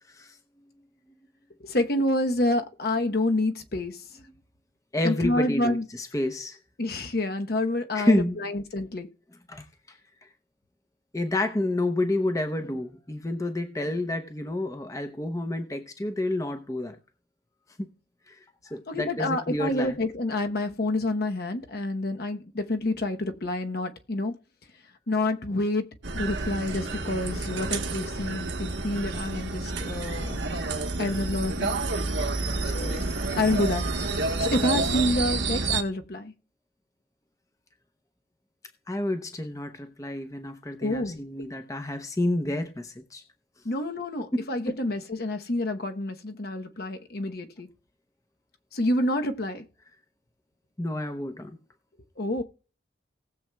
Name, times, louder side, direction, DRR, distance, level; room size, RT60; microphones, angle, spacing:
voice 1, 1.6-4.0 5.0-5.8 6.8-9.1 18.9-24.3 25.1-25.8 26.1-30.4 31.0-31.8 32.6-33.1 33.4-33.8 34.4-36.3 40.8-41.2 43.6-47.7 48.7-49.6 52.2-52.4, left 1 dB, 55° left, 0.9 m, -28 dB
voice 2, 4.9-6.6 7.9-8.4 9.5-10.0 11.1-17.0 17.8-17.9 18.3-20.0 38.9-43.2 44.3-44.5 50.8-51.5, left 1 dB, 20° left, 0.7 m, -29 dB
sound 1, 26.0-35.8, right 3 dB, 80° right, 1.2 m, -29 dB
19.0 x 7.3 x 2.3 m
head